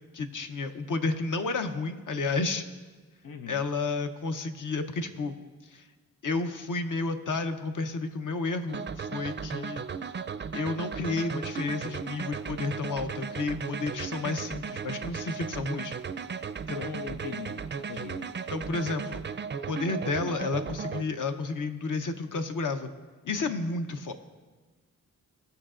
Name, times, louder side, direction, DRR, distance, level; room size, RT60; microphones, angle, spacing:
voice 1, 0.1-2.6 3.5-5.4 5.7-5.8 6.2-9.8 10.5-16.0 16.7-16.9 17.9-18.0 18.5-19.2 19.7-22.9 23.2-24.1, left 3 dB, 65° left, 7 dB, 0.9 m, -31 dB
voice 2, 3.2-3.6 16.7-18.3, left 6 dB, 85° left, 6 dB, 0.5 m, -40 dB
sound 1, 8.7-21.0, right 6 dB, 35° right, 0.4 m, -36 dB
18.5 x 6.7 x 2.5 m, 1.4 s
cardioid pair, 55°, 34 cm